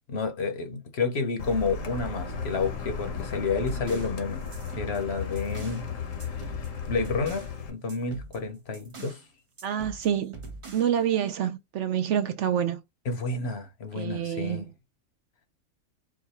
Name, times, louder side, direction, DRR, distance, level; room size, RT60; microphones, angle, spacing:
voice 1, 0.1-4.4 4.8-5.8 6.9-9.2 13.1-14.6, left 4 dB, 55° left, 1.0 m, -30 dB
Car, 1.4-7.7, left 5 dB, 70° left, 1.3 m, -35 dB
sound 1, 3.3-5.9 6.2-7.6 7.9-9.2 9.6-11.0, right 3 dB, 30° right, 0.6 m, -44 dB
voice 2, 9.6-10.3 10.7-12.8 13.9-14.7, right 9 dB, 65° right, 0.8 m, -27 dB
4.8 x 2.3 x 4.2 m
omnidirectional pair, 1.4 m